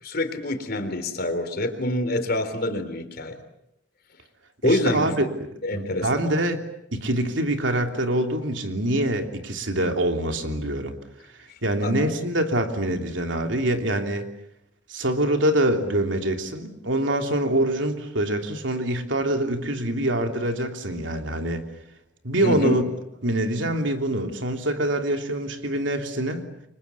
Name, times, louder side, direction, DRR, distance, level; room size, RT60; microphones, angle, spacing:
voice 1, 0.0-3.4 4.6-5.2 5.6-6.2 11.8-11.9 22.4-22.8, left 1 dB, 55° left, 9 dB, 3.6 m, -26 dB
voice 2, 4.6-5.3 5.7-6.6 6.9-10.9 11.6-14.3 14.9-21.6 22.2-22.8 23.2-26.4, right 1 dB, 85° right, 4 dB, 3.2 m, -25 dB
29.5 x 24.5 x 7.2 m, 0.79 s
head